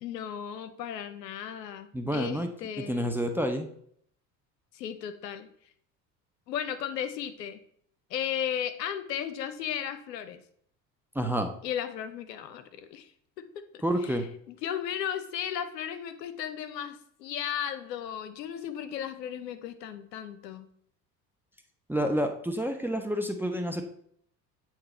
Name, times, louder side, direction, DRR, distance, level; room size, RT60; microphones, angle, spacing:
voice 1, 0.0-3.1 4.7-5.5 6.5-7.6 8.1-10.4 11.6-13.1 13.7-14.2 14.5-20.7, left 9 dB, 75° left, 11 dB, 0.7 m, -35 dB
voice 2, 1.9-2.5 2.8-3.7 11.1-11.5 13.8-14.3 21.9-23.8, equal, 5° right, 6 dB, 0.5 m, -29 dB
8.6 x 3.1 x 4.2 m, 0.65 s
figure-of-eight pair, 70°, 50 cm